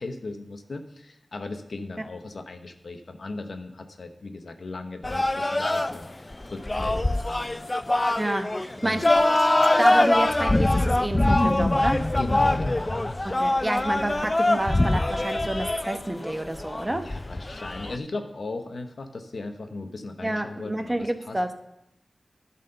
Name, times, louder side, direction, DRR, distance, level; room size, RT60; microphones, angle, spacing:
voice 1, 0.0-7.7 8.8-9.1 12.1-12.9 17.0-21.4, left 3 dB, 70° left, 6 dB, 0.9 m, -37 dB
sound 1, 5.0-18.0, left 1 dB, 30° left, 0.4 m, -23 dB
voice 2, 8.2-9.1 9.8-12.0 13.2-17.0 20.2-21.5, right 1 dB, 25° right, 7 dB, 0.9 m, -29 dB
11.0 x 4.2 x 6.6 m, 0.85 s
cardioid pair, 40°, 0 cm